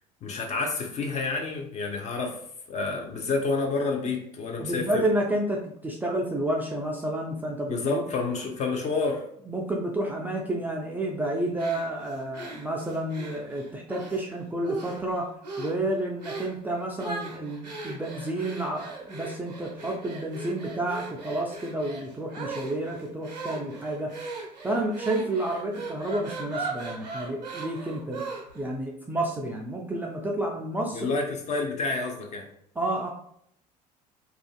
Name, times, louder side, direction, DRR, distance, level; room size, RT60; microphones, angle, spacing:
voice 1, 0.2-2.4 2.7-5.0 7.7-9.2 30.9-32.5, left 3 dB, 35° left, 2 dB, 0.6 m, -29 dB
voice 2, 4.6-8.0 9.5-15.3 15.6-24.1 24.6-28.3 28.5-31.1 32.8-33.1, right 1 dB, 10° right, -2 dB, 0.3 m, -30 dB
sound 1, 11.6-14.2 14.6-15.1 15.4-15.8 16.2-16.6 17.0-28.7, right 3 dB, 85° right, 0.5 m, -38 dB
2.4 x 2.2 x 2.3 m, 0.69 s
figure-of-eight pair, 60°, 21 cm